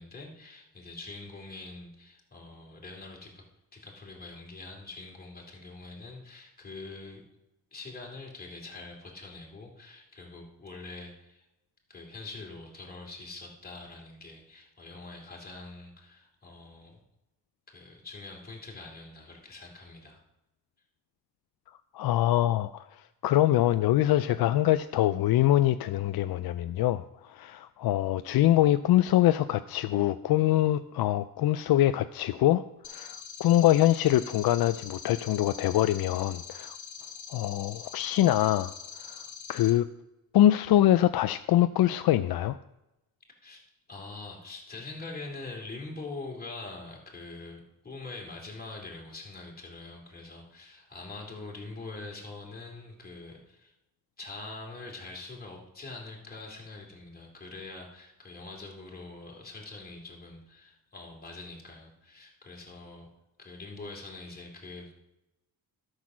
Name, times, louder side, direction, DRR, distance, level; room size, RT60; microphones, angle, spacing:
voice 1, 0.0-3.4 3.7-7.2 7.7-11.5 11.9-17.0 17.7-20.2 43.4-43.6 43.9-53.7 54.2-63.1 63.4-64.9, left 3 dB, 25° left, -1 dB, 2.7 m, -44 dB
voice 2, 21.9-36.8 37.3-39.9 40.3-42.6, left 13 dB, 70° left, 11 dB, 0.5 m, -24 dB
sound 1, 32.8-39.7, left 6 dB, 50° left, 2.0 m, -44 dB
12.0 x 6.5 x 6.2 m, 0.93 s
cardioid pair, 125°, 38 cm